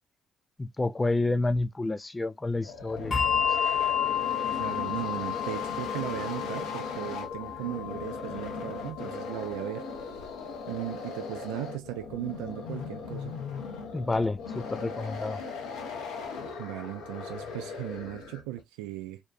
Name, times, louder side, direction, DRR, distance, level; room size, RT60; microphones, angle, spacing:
voice 1, 0.6-3.6 13.9-15.4, left 2 dB, 20° left, 0.3 m, -29 dB
sound 1, 2.5-18.6, left 4 dB, 75° left, 0.6 m, -38 dB
Bell, 3.1-10.0, left 9 dB, 40° left, 0.9 m, -31 dB
voice 2, 4.6-9.9 10.7-13.4 16.6-19.2, right 15 dB, 80° right, 0.4 m, -37 dB
2.6 x 2.3 x 2.3 m
hypercardioid pair, 50°, 0 cm